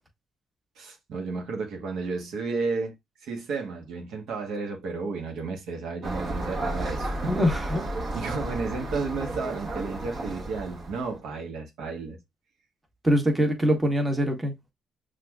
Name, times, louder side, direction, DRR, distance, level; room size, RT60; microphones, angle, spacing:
voice 1, 0.8-2.9 3.2-7.3 8.1-12.2, right 4 dB, 80° right, 1.0 m, -32 dB
sound 1, 6.0-11.2, right 2 dB, 50° right, 1.3 m, -33 dB
voice 2, 7.3-7.8 13.0-14.5, equal, 15° right, 1.1 m, -23 dB
6.1 x 2.4 x 2.2 m
cardioid pair, 90°, 0 cm